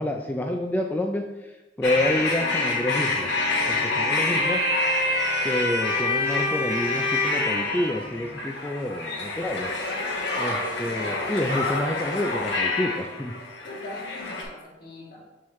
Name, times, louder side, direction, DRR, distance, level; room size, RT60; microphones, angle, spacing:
voice 1, 0.0-3.4 3.7-4.6 5.4-9.7 10.4-13.3, left 1 dB, 10° left, 2 dB, 0.3 m, -28 dB
sound 1, 1.8-14.4, left 2 dB, 70° left, 1.2 m, -26 dB
voice 2, 4.2-4.6 10.1-10.6 13.6-15.2, left 2 dB, 55° left, -5 dB, 2.1 m, -41 dB
7.1 x 4.7 x 3.1 m, 1.1 s
head